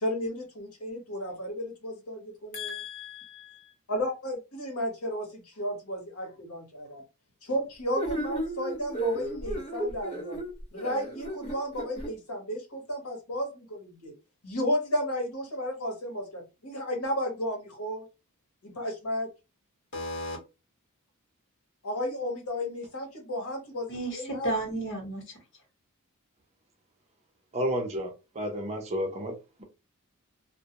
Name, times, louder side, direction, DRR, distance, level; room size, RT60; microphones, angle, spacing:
voice 1, 0.0-2.8 3.9-7.0 7.4-10.4 10.7-14.1 14.4-18.0 18.6-19.3 21.8-24.5, equal, 80° left, 1 dB, 1.0 m, -33 dB
voice 2, 2.5-3.7 19.9-20.4 23.9-25.4, right 1 dB, 55° left, 1 dB, 1.1 m, -34 dB
sound 1, 7.9-12.1, right 1 dB, 25° left, 0.8 m, -33 dB
voice 3, 27.5-29.3, equal, 30° right, 3 dB, 0.6 m, -31 dB
2.2 x 2.1 x 2.8 m, 0.28 s
head